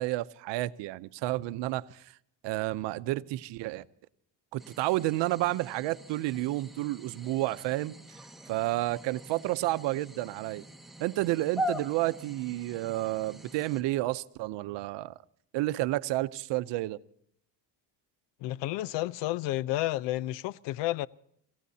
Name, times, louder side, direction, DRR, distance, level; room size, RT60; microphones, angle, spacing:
voice 1, 0.0-2.1 2.4-3.8 4.5-8.0 8.5-10.6 11.0-15.1 15.5-17.0, right 17 dB, 85° right, 0.7 m, -30 dB
sound 1, 4.6-13.8, equal, ahead, 1.4 m, -42 dB
voice 2, 18.4-21.1, left 16 dB, 90° left, 0.6 m, -31 dB
27.0 x 16.5 x 2.8 m
cardioid pair, 90°, 42 cm